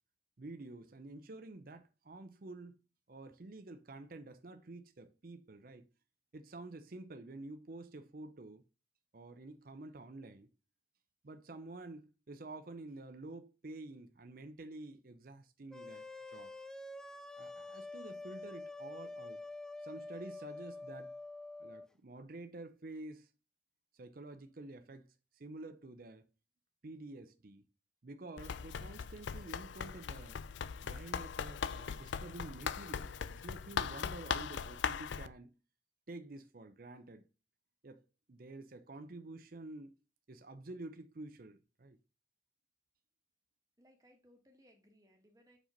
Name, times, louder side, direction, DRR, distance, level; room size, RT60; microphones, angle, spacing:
voice 1, 0.4-2.8 3.1-5.9 6.3-8.6 9.1-10.5 11.2-16.1 16.3-16.5 17.4-19.4 19.8-21.1 21.6-23.3 23.9-25.1 25.4-26.3 26.8-27.6 28.0-30.4 30.8-35.5 36.1-37.2 37.8-38.0 38.3-39.9 40.3-42.0, right 2 dB, 50° right, 0.6 m, -49 dB
sound 1, 15.7-21.9, left 2 dB, 5° left, 0.3 m, -47 dB
Run, 28.4-35.3, left 6 dB, 75° left, 0.4 m, -39 dB
voice 2, 43.8-45.6, equal, 20° right, 1.4 m, -65 dB
5.5 x 5.1 x 5.2 m
head